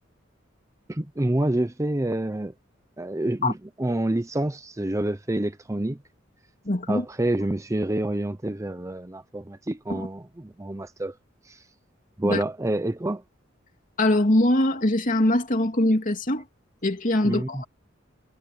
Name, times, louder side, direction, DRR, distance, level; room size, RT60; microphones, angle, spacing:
voice 1, 0.9-2.5 3.0-6.0 6.9-11.1 11.5-11.6 12.2-13.2 17.2-17.6, right 1 dB, 15° right, 0.6 m, -28 dB
voice 2, 6.6-7.0 9.9-10.1 12.2-12.4 14.0-16.4 16.8-17.6, left 1 dB, 40° left, 2.8 m, -22 dB
head